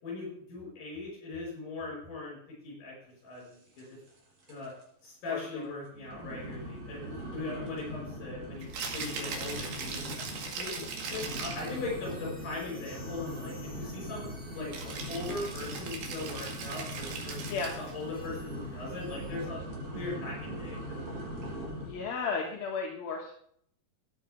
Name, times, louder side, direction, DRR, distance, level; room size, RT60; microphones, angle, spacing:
voice 1, 0.0-2.4 2.6-4.0 4.5-4.7 5.0-10.2 10.6-10.8 11.1-14.3 14.5-17.4 17.8-19.6 19.9-21.2, left 3 dB, 60° left, -4 dB, 7.3 m, -40 dB
sound 1, 3.8-4.2 4.4-4.8 5.3-5.4 5.9-22.1, equal, 50° right, 4.7 m, -41 dB
voice 2, 5.3-5.7 7.5-7.7 10.4-10.7 17.5-17.7 21.8-23.3, left 5 dB, 75° left, -1 dB, 3.3 m, -35 dB
sound 2, 8.6-19.5, equal, 5° left, 1.4 m, -54 dB
Rattle (instrument), 8.6-11.8 14.7-18.0, right 5 dB, 85° right, 3.9 m, -39 dB
14.0 x 9.8 x 3.5 m, 0.66 s
omnidirectional pair, 4.3 m